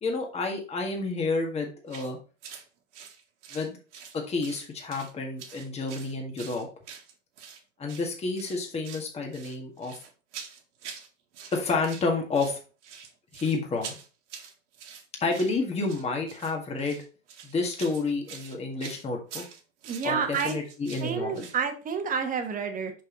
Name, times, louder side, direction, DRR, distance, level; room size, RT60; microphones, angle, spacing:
voice 1, 0.0-2.2 3.5-3.8 4.1-6.7 7.8-9.9 11.5-12.6 13.3-14.0 15.2-17.0 17.4-19.4 20.0-21.5, left 3 dB, 15° left, 1 dB, 1.8 m, -30 dB
sound 1, 1.9-2.1 2.4-2.6 2.9-4.2 4.4-5.1 5.4-7.6 7.9-8.1 8.4-9.1 9.3-11.1 11.3-12.1 12.3-21.6, right 7 dB, 70° right, 1.8 m, -45 dB
voice 2, 19.8-20.6 21.0-22.9, right 6 dB, 20° right, 5 dB, 1.4 m, -29 dB
5.7 x 5.4 x 3.9 m, 0.34 s
hypercardioid pair, 120°, 37 cm